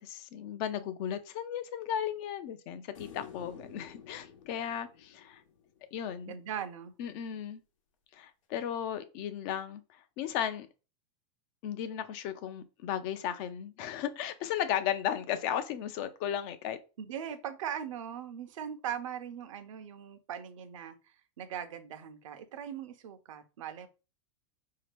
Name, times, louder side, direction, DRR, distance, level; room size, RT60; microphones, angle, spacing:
voice 1, 0.0-5.4 5.9-6.3 7.0-7.6 8.1-10.7 11.6-16.8, left 9 dB, 45° left, 0.5 m, -35 dB
sound 1, 2.9-6.2 8.8-8.9, left 7 dB, 90° left, 0.8 m, -51 dB
voice 2, 6.3-6.9 17.0-23.9, right 9 dB, 85° right, 0.7 m, -40 dB
4.3 x 2.8 x 3.3 m
supercardioid pair, 150°, 16 cm